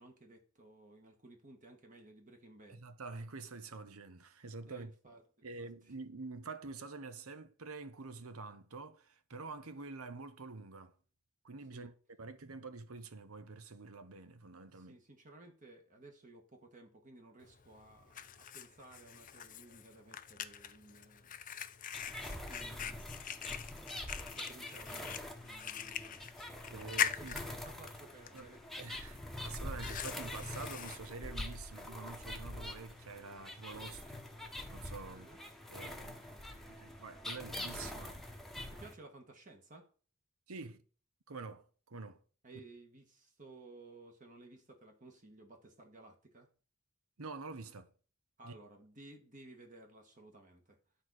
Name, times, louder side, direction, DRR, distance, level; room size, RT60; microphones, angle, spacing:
voice 1, 0.0-2.8 4.6-5.2 5.6-5.9 11.7-11.9 14.6-21.4 22.5-23.4 23.8-23.9 24.1-26.2 26.7-28.6 35.1-35.4 36.0-37.0 38.7-39.9 42.4-46.5 48.4-50.8, right 2 dB, 35° right, 1.6 m, -57 dB
voice 2, 2.7-4.9 5.4-10.9 11.4-15.0 26.6-27.4 28.3-28.5 28.8-34.2 34.7-35.3 35.7-36.2 36.5-38.2 40.5-40.8 41.3-42.2 47.2-47.9 48.4-48.6, right 3 dB, 85° right, 1.0 m, -47 dB
Fire, 17.4-32.4, left 9 dB, 40° left, 0.6 m, -43 dB
sound 1, 21.9-38.9, left 1 dB, ahead, 1.1 m, -45 dB
11.0 x 4.1 x 6.3 m
head